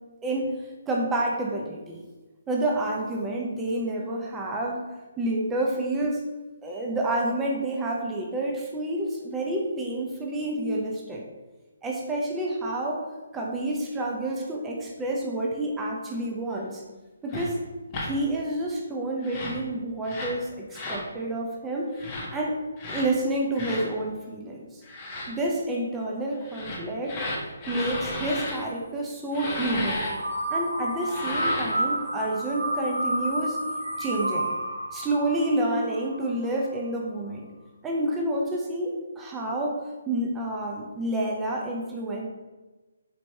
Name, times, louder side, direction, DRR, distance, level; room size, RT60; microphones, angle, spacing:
voice 1, 0.2-2.0 2.5-4.9 5.2-6.2 6.6-11.2 11.8-13.0 13.3-16.8 17.2-17.6 18.0-21.9 22.3-22.6 22.9-24.8 25.3-27.2 27.7-30.0 30.5-33.6 34.0-34.5 34.9-37.5 37.8-39.8 40.1-42.3, right 1 dB, 10° right, -2 dB, 0.5 m, -29 dB
sound 1, 17.3-17.5 17.9-18.1 19.2-19.6 20.0-20.4 20.7-21.0 21.9-22.3 22.8-23.1 23.5-23.9 24.8-25.3 26.4-28.6 29.3-30.1 31.0-31.8, left 2 dB, 25° left, 0.8 m, -33 dB
sound 2, 29.8-36.6, right 1 dB, 90° right, 0.6 m, -30 dB
4.4 x 2.9 x 2.7 m, 1.2 s
figure-of-eight pair, 150°, 0 cm